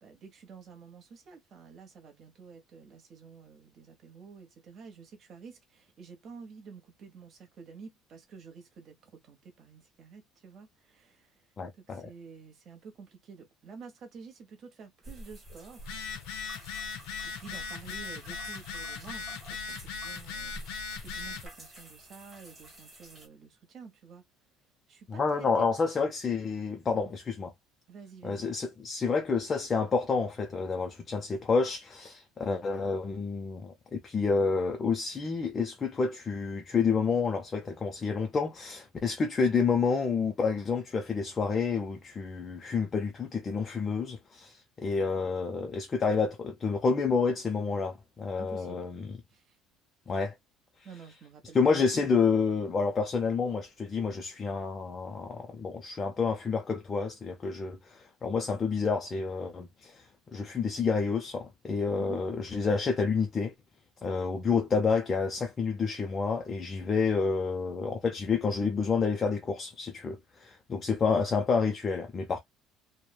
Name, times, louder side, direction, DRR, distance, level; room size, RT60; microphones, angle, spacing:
voice 1, 0.0-11.5 11.8-15.9 17.2-20.6 21.0-24.2 24.9-25.7 26.9-27.1 27.9-28.5 48.4-48.9 49.3-49.6 50.8-52.1 62.0-62.2, right 5 dB, 35° right, 0.9 m, -50 dB
voice 2, 11.6-12.1 25.1-27.5 28.2-49.2 50.1-50.3 51.5-63.5 64.0-72.4, left 5 dB, 20° left, 0.4 m, -29 dB
sound 1, 15.0-23.3, right 1 dB, 10° right, 1.4 m, -50 dB
Telephone, 15.8-21.5, left 5 dB, 75° left, 0.6 m, -39 dB
3.0 x 2.1 x 2.2 m
cardioid pair, 170°, 0 cm